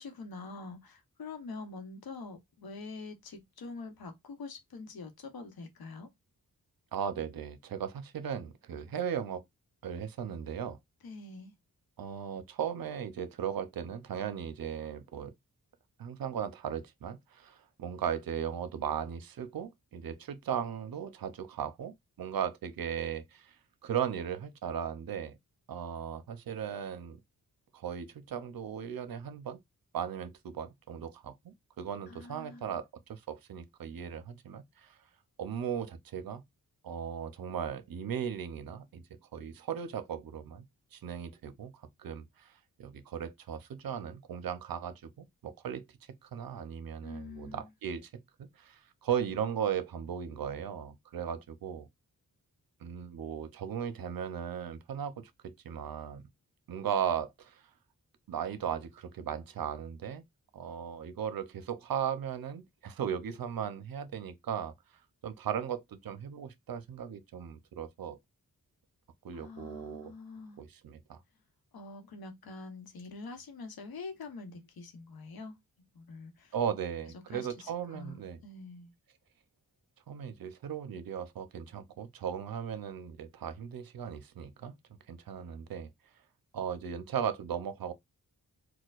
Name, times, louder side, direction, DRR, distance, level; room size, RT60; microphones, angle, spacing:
voice 1, 0.0-6.1 11.0-11.5 32.1-32.7 47.0-47.7 69.3-70.6 71.7-75.6 75.9-76.5 77.3-78.9, left 3 dB, 85° left, 0.9 m, -45 dB
voice 2, 6.9-9.4 9.8-10.8 12.0-15.3 16.0-23.5 23.8-25.4 25.7-27.2 27.7-29.6 29.9-35.0 35.4-36.4 36.8-39.0 39.3-40.6 40.9-41.7 42.0-42.5 42.8-45.8 46.2-48.1 48.4-51.9 52.8-56.3 56.7-57.6 58.3-60.2 60.5-64.7 65.2-68.2 69.2-70.1 70.6-71.2 76.5-78.4 80.1-84.8 85.1-85.9 86.5-87.9, right 8 dB, 75° right, 0.6 m, -37 dB
4.3 x 2.2 x 2.4 m
wide cardioid pair, 95°, 35 cm